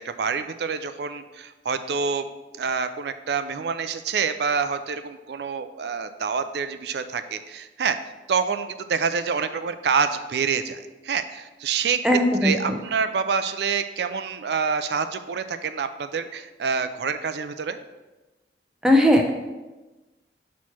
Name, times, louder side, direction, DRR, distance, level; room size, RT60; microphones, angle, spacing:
voice 1, 0.0-2.3 2.6-8.0 8.3-17.8, right 5 dB, 70° right, 10 dB, 0.4 m, -27 dB
voice 2, 12.0-12.8 18.8-19.3, left 1 dB, 5° right, 1 dB, 0.6 m, -18 dB
6.2 x 3.1 x 5.7 m, 1.1 s
head